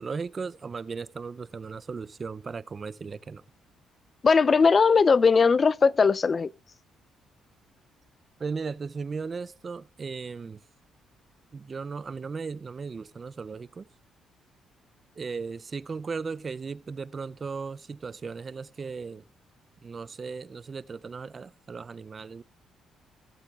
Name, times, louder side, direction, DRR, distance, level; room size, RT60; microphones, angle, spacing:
voice 1, 0.0-3.4 8.4-10.6 11.5-13.9 15.2-19.2 19.8-22.4, right 5 dB, 35° right, 0.4 m, -36 dB
voice 2, 4.2-6.5, left 5 dB, 35° left, 0.4 m, -19 dB
18.0 x 8.1 x 2.4 m
cardioid pair, 90°, 0 cm